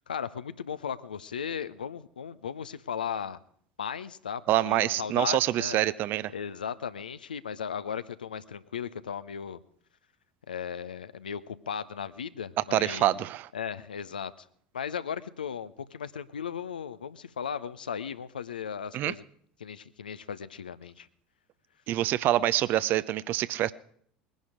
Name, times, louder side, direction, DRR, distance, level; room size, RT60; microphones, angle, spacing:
voice 1, 0.1-3.4 3.8-5.8 6.3-9.6 10.5-13.1 13.5-14.5 14.7-19.2 19.6-21.1, left 7 dB, 75° left, 0.6 m, -36 dB
voice 2, 4.5-6.3 12.7-13.5 18.9-19.1 21.9-23.7, right 14 dB, 45° right, 0.6 m, -26 dB
20.5 x 10.5 x 5.0 m
figure-of-eight pair, 70°, 5 cm